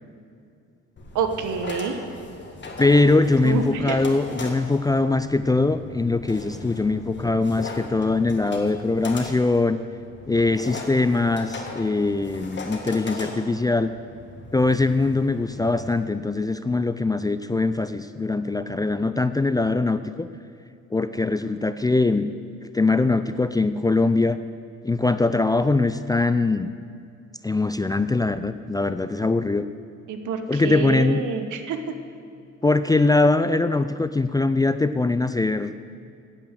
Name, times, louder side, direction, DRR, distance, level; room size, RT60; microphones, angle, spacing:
sound 1, 1.0-15.9, left 3 dB, 40° left, 1.7 m, -38 dB
voice 1, 1.1-2.0 3.4-4.0 30.1-31.8, right 6 dB, 75° right, 8 dB, 1.1 m, -27 dB
voice 2, 2.8-9.8 10.3-13.9 14.5-20.3 20.9-22.3 22.6-24.4 24.8-26.7 27.4-29.7 30.5-31.2 32.6-35.8, left 3 dB, 15° left, 11 dB, 0.3 m, -22 dB
8.8 x 8.7 x 7.9 m, 2.4 s
cardioid pair, 90°, 30 cm